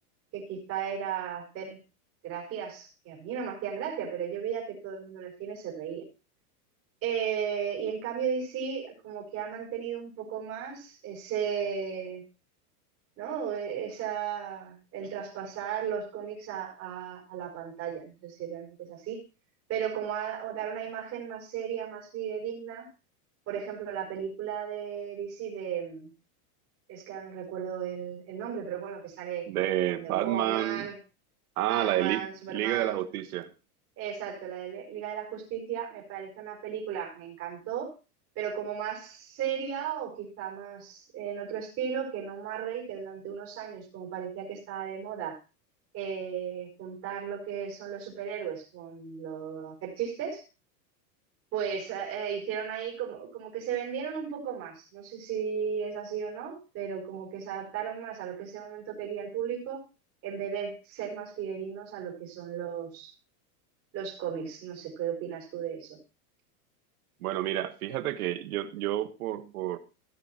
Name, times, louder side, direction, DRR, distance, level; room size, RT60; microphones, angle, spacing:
voice 1, 0.3-1.8 2.2-6.0 7.0-12.2 13.2-19.2 19.7-22.9 23.5-26.1 26.9-29.5 29.9-31.0 31.7-33.0 34.0-37.9 38.3-45.4 45.9-50.4 51.5-59.8 60.2-63.1 63.9-66.0, right 8 dB, 30° right, 4.8 m, -35 dB
voice 2, 29.5-30.9 31.6-32.2 32.5-33.5 67.2-69.8, right 13 dB, 70° right, 1.7 m, -29 dB
16.0 x 7.2 x 4.4 m
supercardioid pair, 160°, 45 cm